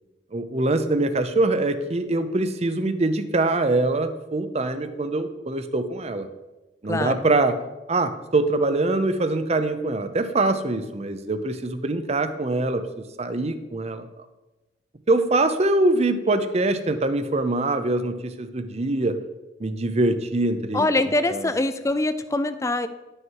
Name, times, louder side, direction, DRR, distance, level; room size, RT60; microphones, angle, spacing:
voice 1, 0.3-6.3 6.8-7.6 7.9-12.8 13.2-14.1 15.1-19.2 19.6-20.9 21.3-21.5, right 2 dB, 35° right, 10 dB, 0.7 m, -23 dB
voice 2, 20.7-22.9, left 2 dB, 15° left, 11 dB, 0.4 m, -23 dB
11.0 x 6.5 x 4.6 m, 1.1 s
head